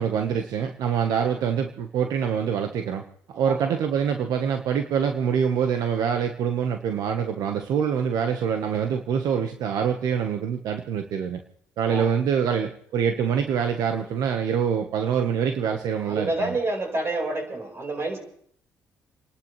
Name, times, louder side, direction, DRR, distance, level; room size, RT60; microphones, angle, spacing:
voice 1, 0.0-3.0 3.3-11.4 11.8-16.6, right 7 dB, 75° right, 5 dB, 1.2 m, -25 dB
voice 2, 16.0-18.2, right 2 dB, 40° right, 2 dB, 4.7 m, -28 dB
29.0 x 11.5 x 3.3 m, 0.66 s
supercardioid pair, 75°, 7 cm